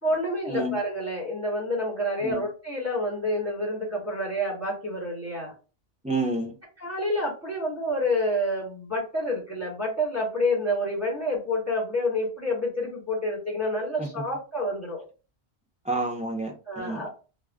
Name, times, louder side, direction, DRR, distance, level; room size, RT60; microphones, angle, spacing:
voice 1, 0.0-5.5 6.8-15.1 16.7-17.2, left 1 dB, 15° left, -3 dB, 1.3 m, -28 dB
voice 2, 6.0-6.5 14.0-14.1 15.8-17.1, right 2 dB, 10° right, -1 dB, 0.4 m, -29 dB
2.4 x 2.1 x 3.4 m, 0.33 s
omnidirectional pair, 1.1 m